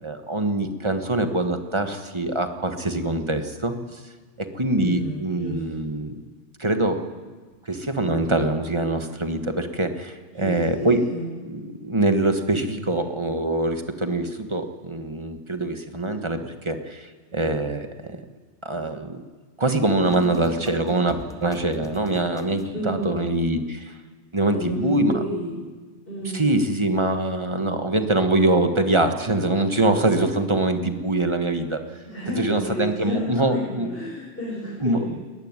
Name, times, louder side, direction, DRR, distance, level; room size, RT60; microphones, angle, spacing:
voice 1, 0.0-4.0 4.4-6.2 6.6-7.0 7.7-11.0 11.4-18.2 18.6-19.2 19.6-24.0 24.3-25.2 26.3-31.8 32.4-33.9 34.8-35.1, right 2 dB, 25° right, 7 dB, 1.4 m, -24 dB
voice 2, 4.7-5.8 10.3-11.2 22.7-23.1 24.5-25.5 26.1-26.5 32.1-34.9, right 1 dB, 50° left, -5 dB, 5.9 m, -31 dB
sound 1, 20.0-22.9, right 3 dB, 5° left, 1.1 m, -38 dB
20.0 x 14.5 x 9.7 m, 1.4 s
omnidirectional pair, 1.2 m